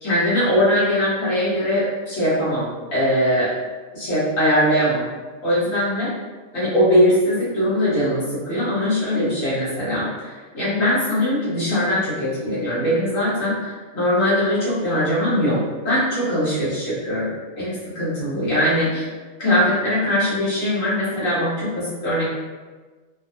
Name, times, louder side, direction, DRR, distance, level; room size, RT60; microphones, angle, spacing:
voice 1, 0.0-3.5 3.9-5.0 5.4-6.1 6.5-17.3 17.6-19.1 19.4-22.2, equal, 70° left, -10 dB, 1.6 m, -21 dB
3.2 x 2.2 x 2.6 m, 1.4 s
omnidirectional pair, 1.4 m